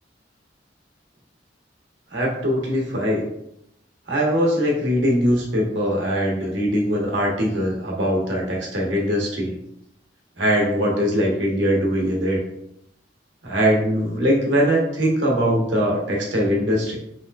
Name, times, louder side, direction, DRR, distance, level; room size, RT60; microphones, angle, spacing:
voice 1, 2.1-3.3 4.1-9.6 10.4-12.4 13.4-17.0, equal, 80° right, -2 dB, 0.9 m, -21 dB
3.2 x 3.0 x 2.3 m, 0.79 s
head